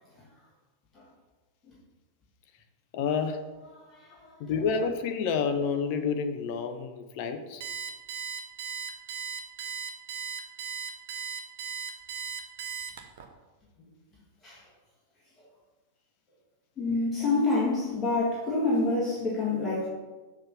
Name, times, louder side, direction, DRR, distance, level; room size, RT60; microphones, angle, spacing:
voice 1, 2.9-3.4 4.4-7.6 17.2-17.4, left 6 dB, 45° left, 7 dB, 0.6 m, -29 dB
voice 2, 3.7-4.3 14.4-14.6 16.8-19.9, left 3 dB, 20° left, -6 dB, 1.7 m, -28 dB
Alarm, 7.6-13.3, right 7 dB, 55° right, 0.8 m, -36 dB
6.5 x 3.6 x 5.8 m, 1.2 s
figure-of-eight pair, 90°, 0 cm